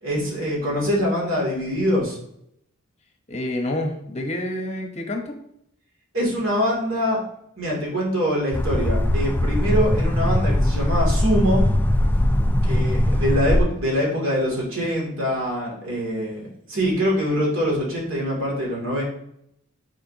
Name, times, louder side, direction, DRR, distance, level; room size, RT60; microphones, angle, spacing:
voice 1, 0.0-2.2 6.1-7.2 7.6-11.7 12.6-19.0, equal, 65° right, -3 dB, 2.6 m, -24 dB
voice 2, 3.3-5.4, left 1 dB, 30° left, 3 dB, 0.9 m, -28 dB
sound 1, 8.5-13.6, left 1 dB, 10° left, 0.3 m, -20 dB
9.1 x 4.4 x 2.8 m, 0.75 s
head